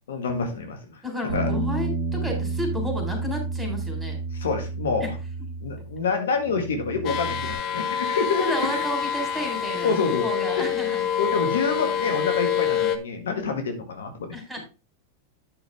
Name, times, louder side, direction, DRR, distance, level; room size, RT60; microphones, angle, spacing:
voice 1, 0.1-1.0 1.3-1.5 4.3-5.1 5.6-8.8 9.8-10.3 10.6-10.7 11.2-14.6, left 4 dB, 75° left, 6 dB, 1.7 m, -27 dB
voice 2, 1.0-4.2 5.0-5.1 8.0-11.0 14.3-14.6, left 1 dB, 5° right, 2 dB, 4.0 m, -32 dB
Bass guitar, 1.3-6.1 6.4-7.5, right 3 dB, 75° right, 2.1 m, -30 dB
sound 1, 7.0-13.0, left 8 dB, 45° left, 1.2 m, -26 dB
9.5 x 6.4 x 3.5 m, 0.30 s
hypercardioid pair, 100°, 0 cm